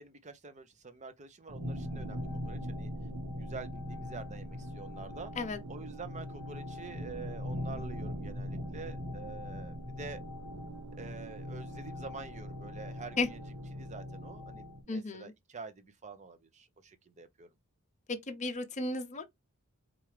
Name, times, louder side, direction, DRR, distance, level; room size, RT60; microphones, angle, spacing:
voice 1, 0.0-2.9 3.3-5.3 5.7-10.2 10.9-13.4 13.7-17.5, right 4 dB, 30° right, 0.6 m, -47 dB
sound 1, 1.5-14.8, left 1 dB, 75° right, 1.2 m, -40 dB
voice 2, 14.9-15.3 18.1-19.2, left 3 dB, 30° left, 0.7 m, -34 dB
4.5 x 2.5 x 3.2 m
head